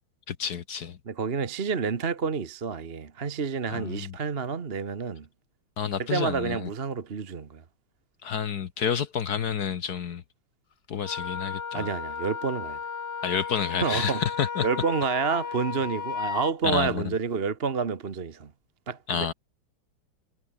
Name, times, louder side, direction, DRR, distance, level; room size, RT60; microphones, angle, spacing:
voice 1, 0.3-1.0 3.7-4.1 5.8-6.7 8.2-10.2 10.9-11.9 13.2-14.7 16.6-17.1 19.1-19.3, left 7 dB, 55° left, 1.5 m, -29 dB
voice 2, 1.1-5.3 6.0-7.6 11.7-12.8 13.8-14.2 14.6-18.5 18.9-19.3, right 5 dB, 35° right, 1.2 m, -29 dB
Wind instrument woodwind instrument, 11.0-16.5, left 6 dB, 35° left, 1.2 m, -34 dB
omnidirectional pair, 2.2 m